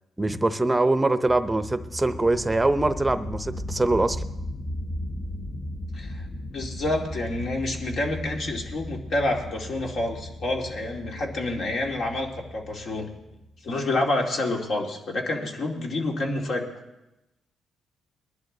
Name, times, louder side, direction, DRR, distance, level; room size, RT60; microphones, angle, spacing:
voice 1, 0.2-4.2, right 2 dB, 15° right, 11 dB, 0.8 m, -23 dB
sound 1, 1.3-13.7, left 1 dB, 35° left, 1.1 m, -36 dB
voice 2, 6.5-13.1 13.6-16.7, left 2 dB, 60° left, 1 dB, 2.5 m, -28 dB
21.5 x 11.0 x 4.0 m, 0.95 s
cardioid pair, 90°, 0 cm